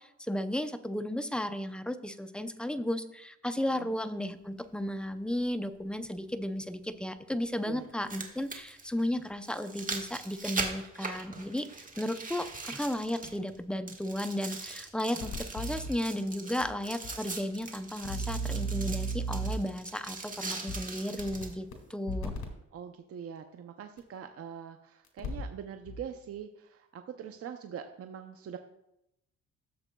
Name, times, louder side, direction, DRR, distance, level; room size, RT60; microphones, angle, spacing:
voice 1, 0.0-11.7 12.0-22.3, left 1 dB, 5° left, 9 dB, 0.5 m, -34 dB
sound 1, 4.6-4.7 6.6-6.7 7.8-13.6 13.9-21.5 22.1-22.2, right 3 dB, 25° right, 1.5 m, -41 dB
sound 2, 15.2-15.9 16.6-16.7 17.0-17.1 18.0-19.7 20.7-20.8 21.2-21.7 22.1-22.5 24.0-24.1 25.1-25.5 25.9-26.0, right 2 dB, 65° left, 2.0 m, -35 dB
voice 2, 22.7-28.6, right 8 dB, 50° right, 7 dB, 0.6 m, -43 dB
12.5 x 7.0 x 2.3 m, 0.83 s
cardioid pair, 90°, 30 cm